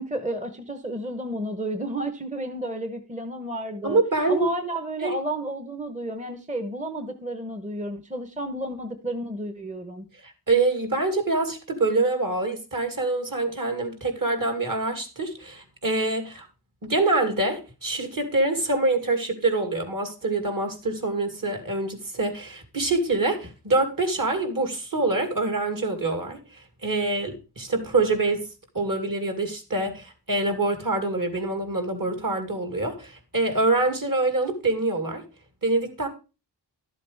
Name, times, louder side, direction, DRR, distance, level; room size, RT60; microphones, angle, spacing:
voice 1, 0.0-4.0 4.3-10.1, right 1 dB, 15° right, 8 dB, 1.0 m, -31 dB
voice 2, 3.8-4.5 5.0-5.1 10.2-16.5 16.8-28.5 28.7-35.2 35.6-36.1, right 2 dB, 50° right, 5 dB, 2.4 m, -25 dB
12.0 x 7.6 x 3.4 m, 0.31 s
wide cardioid pair, 80°, 43 cm